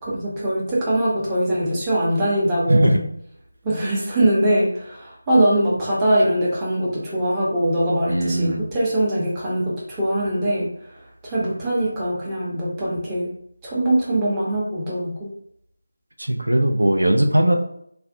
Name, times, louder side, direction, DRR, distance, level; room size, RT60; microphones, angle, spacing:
voice 1, 0.0-3.0 3.6-10.7 11.2-13.3 13.6-15.3, right 1 dB, 15° right, -7 dB, 0.6 m, -22 dB
voice 2, 2.7-3.0 8.1-8.7 16.2-17.6, right 1 dB, 85° right, 3 dB, 0.4 m, -19 dB
2.4 x 2.1 x 2.5 m, 0.71 s
figure-of-eight pair, 165°, 0 cm